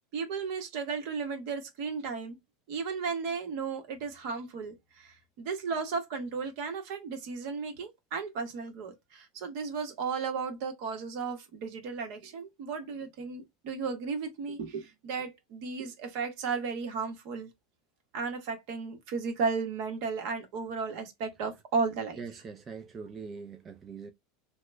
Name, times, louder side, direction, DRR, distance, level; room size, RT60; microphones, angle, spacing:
voice 1, 0.1-2.4 2.7-17.5 18.1-22.2, right 5 dB, 60° right, 1.1 m, -34 dB
voice 2, 22.2-24.1, right 5 dB, 25° right, 0.4 m, -42 dB
2.9 x 2.1 x 3.3 m
supercardioid pair, 130°, 0 cm